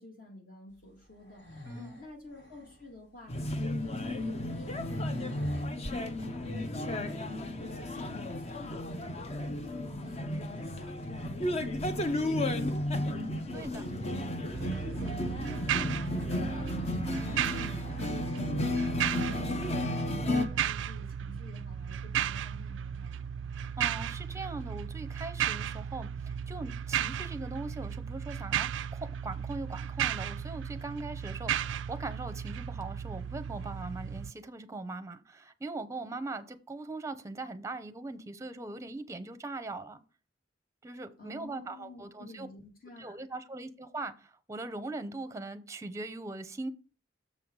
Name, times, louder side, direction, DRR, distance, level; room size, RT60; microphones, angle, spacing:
voice 1, 0.0-23.3 41.2-43.3, left 2 dB, 50° left, 2.5 m, -50 dB
sound 1, 1.0-2.9 3.7-3.8 4.5-5.7, right 1 dB, 90° left, 2.2 m, -46 dB
voice 2, 1.6-2.0 13.5-14.2 17.0-17.3 23.5-40.0 40.8-42.5 43.0-46.7, right 2 dB, 15° right, 0.7 m, -41 dB
sound 2, 3.3-20.5, left 1 dB, 35° left, 0.7 m, -33 dB
sound 3, 14.5-34.3, right 9 dB, 90° right, 0.3 m, -35 dB
6.9 x 5.6 x 4.7 m
head